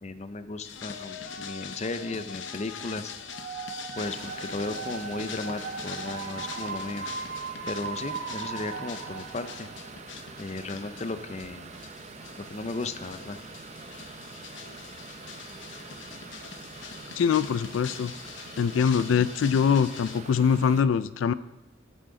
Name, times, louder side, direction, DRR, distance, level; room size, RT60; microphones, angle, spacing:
voice 1, 0.0-3.1 4.0-7.1 7.7-9.7 10.4-11.7 12.5-13.4, left 3 dB, 35° left, 10 dB, 0.6 m, -35 dB
sound 1, 0.6-20.2, left 6 dB, 75° left, 0.8 m, -43 dB
sound 2, 3.3-10.1, right 5 dB, 75° right, 1.0 m, -38 dB
sound 3, 4.0-20.8, right 4 dB, 35° right, 0.6 m, -45 dB
voice 2, 17.2-18.1 18.6-21.3, left 7 dB, 90° left, 15 dB, 0.3 m, -23 dB
11.5 x 9.0 x 3.8 m, 0.98 s
head